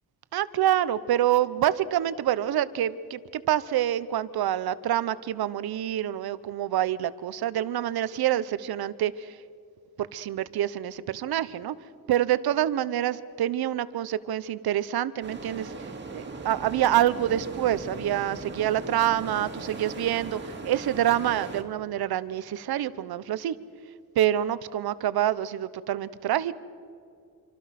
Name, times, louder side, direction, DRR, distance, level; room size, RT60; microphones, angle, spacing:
voice 1, 0.3-9.4 10.0-11.8 12.1-23.6 24.2-26.5, right 12 dB, 80° right, 16 dB, 1.0 m, -27 dB
sound 1, 15.2-21.6, right 3 dB, 30° right, 2.3 m, -38 dB
26.5 x 25.5 x 5.9 m, 2.3 s
wide cardioid pair, 170°, 37 cm